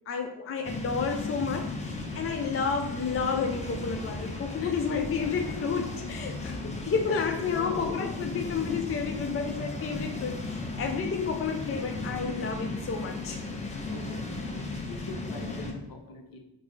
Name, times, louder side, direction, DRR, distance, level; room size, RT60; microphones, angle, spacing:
voice 1, 0.1-13.4 15.5-15.6, left 5 dB, 35° left, 4 dB, 0.5 m, -31 dB
sound 1, 0.6-15.7, left 2 dB, 15° left, 0.9 m, -36 dB
sound 2, 3.3-8.6, left 2 dB, 90° left, 0.8 m, -50 dB
voice 2, 7.5-8.0 13.9-14.6 14.9-16.4, left 2 dB, 55° left, 3 dB, 0.8 m, -41 dB
3.6 x 2.0 x 4.0 m, 0.91 s
supercardioid pair, 45°, 42 cm